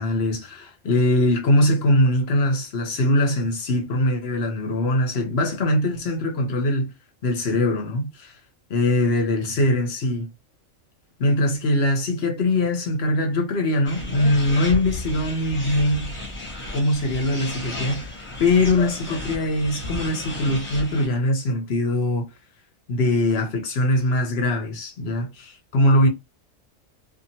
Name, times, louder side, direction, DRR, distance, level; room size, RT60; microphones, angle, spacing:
voice 1, 0.0-6.9 7.2-8.4 8.7-10.3 11.2-16.1 16.7-22.2 22.9-26.1, left 1 dB, 55° left, 0.9 m, -22 dB
sound 1, 13.8-21.1, left 1 dB, 25° left, 1.2 m, -33 dB
2.7 x 2.6 x 2.7 m
omnidirectional pair, 1.4 m